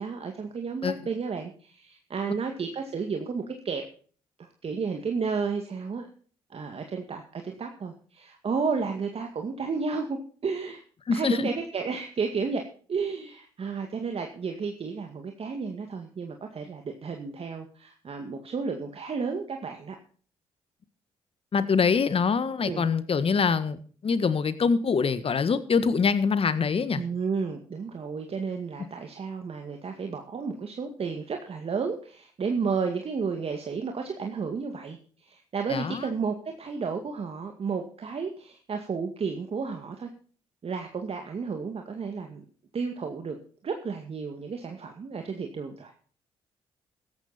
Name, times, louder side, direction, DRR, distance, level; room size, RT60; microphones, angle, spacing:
voice 1, 0.0-3.8 4.4-6.1 6.5-10.8 11.1-20.0 22.7-22.8 27.0-40.1 40.6-42.4 42.7-43.4 43.6-45.9, right 5 dB, 50° right, 4 dB, 2.1 m, -32 dB
voice 2, 11.1-11.5 21.5-27.0 35.7-36.1, left 5 dB, 45° left, 13 dB, 1.5 m, -24 dB
14.0 x 12.0 x 4.3 m, 0.43 s
hypercardioid pair, 50°, 13 cm